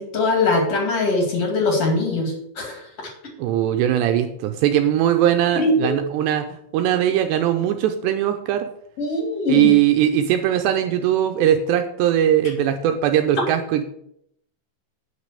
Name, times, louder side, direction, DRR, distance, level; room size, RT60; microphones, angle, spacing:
voice 1, 0.0-2.9 5.6-5.9 9.0-9.7, left 2 dB, 45° left, 1 dB, 2.4 m, -21 dB
voice 2, 3.4-8.7 9.5-13.8, right 11 dB, 80° right, 6 dB, 2.5 m, -20 dB
9.1 x 6.4 x 6.6 m, 0.74 s
omnidirectional pair, 5.5 m